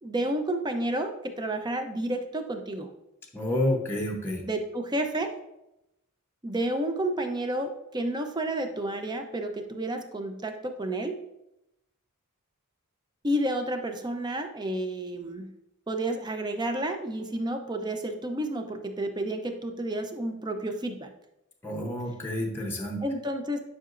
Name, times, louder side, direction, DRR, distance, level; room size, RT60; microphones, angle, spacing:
voice 1, 0.0-2.9 4.4-5.3 6.4-11.1 13.2-15.5 15.9-21.1 23.0-23.6, right 1 dB, 20° right, 5 dB, 0.7 m, -30 dB
voice 2, 3.3-4.4 21.6-23.0, left 1 dB, 10° left, -1 dB, 0.9 m, -29 dB
10.5 x 5.7 x 2.5 m, 0.86 s
head